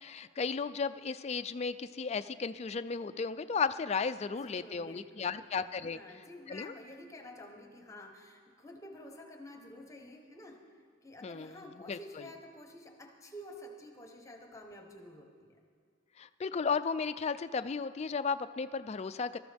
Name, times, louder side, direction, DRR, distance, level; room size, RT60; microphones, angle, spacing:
voice 1, 0.0-6.0 6.5-6.7 11.2-11.6 11.9-12.0 16.2-19.4, left 5 dB, 30° left, 12 dB, 0.3 m, -34 dB
voice 2, 4.3-10.7 11.0-15.6, left 1 dB, 15° left, 3 dB, 1.0 m, -50 dB
19.5 x 13.0 x 3.5 m, 2.1 s
head